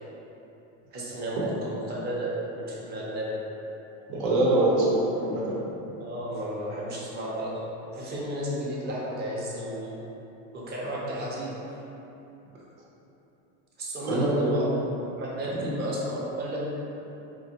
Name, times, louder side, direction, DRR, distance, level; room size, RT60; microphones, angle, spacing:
voice 1, 0.9-3.4 6.0-7.6 7.9-10.0 10.5-11.5 13.8-14.6 15.2-16.6, right 1 dB, 30° right, -5 dB, 0.7 m, -33 dB
voice 2, 4.1-5.6 14.1-14.6 15.6-15.7, right 2 dB, 75° right, -5 dB, 1.0 m, -24 dB
4.6 x 2.6 x 2.8 m, 3.0 s
cardioid pair, 155°, 36 cm